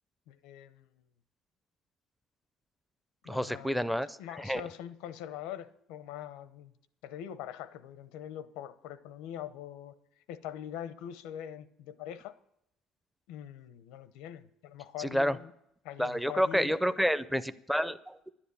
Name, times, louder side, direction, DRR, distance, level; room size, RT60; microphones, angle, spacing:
voice 1, 0.3-0.9 3.2-3.9 4.2-6.7 7.0-9.9 10.3-12.3 13.3-15.5 15.8-16.8, left 10 dB, 90° left, 0.8 m, -43 dB
voice 2, 3.3-4.6 15.0-15.4 16.0-18.3, equal, ahead, 0.4 m, -29 dB
11.0 x 10.0 x 7.0 m
cardioid pair, 170°, 0 cm